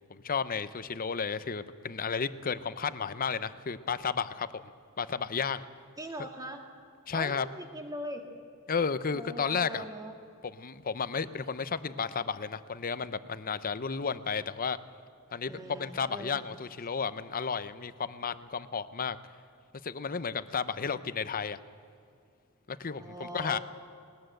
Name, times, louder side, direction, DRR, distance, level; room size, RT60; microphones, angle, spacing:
voice 1, 0.1-4.5 5.0-5.6 7.1-7.5 8.7-9.9 10.4-14.8 15.3-19.2 19.8-21.6 22.7-23.6, left 5 dB, 40° left, 13 dB, 0.7 m, -33 dB
voice 2, 6.0-6.6 7.1-8.2 9.1-10.2 15.5-16.5 23.0-23.6, equal, 15° right, 3 dB, 2.2 m, -41 dB
20.5 x 19.5 x 7.8 m, 2.4 s
head